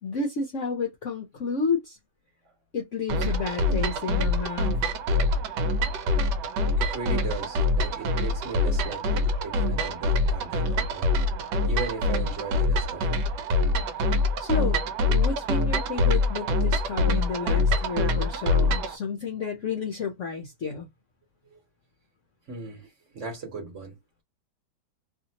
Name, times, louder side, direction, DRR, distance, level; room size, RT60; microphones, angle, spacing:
voice 1, 0.0-2.0 2.7-4.7 14.0-14.8 15.1-20.9, left 5 dB, 65° left, 0.8 m, -31 dB
sound 1, 3.1-19.0, left 2 dB, 75° right, 1.2 m, -25 dB
voice 2, 6.6-11.1 11.7-13.2 21.4-21.6 22.5-24.2, right 4 dB, 50° right, 1.2 m, -38 dB
2.8 x 2.7 x 2.7 m
omnidirectional pair, 1.9 m